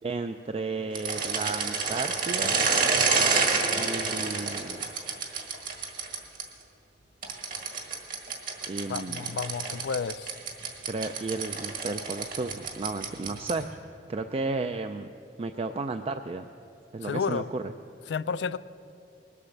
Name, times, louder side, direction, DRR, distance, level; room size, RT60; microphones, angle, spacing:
voice 1, 0.0-2.6 3.8-4.8 8.7-9.2 10.9-13.7 14.1-15.1 15.4-16.5 16.9-17.6, right 3 dB, 35° right, 8 dB, 0.4 m, -33 dB
sound 1, 0.9-6.4 7.2-13.7, right 4 dB, 55° right, 1.7 m, -29 dB
voice 2, 8.9-10.3 17.0-17.5 18.1-18.6, left 5 dB, 70° left, 17 dB, 0.4 m, -31 dB
20.0 x 8.4 x 7.1 m, 2.7 s
head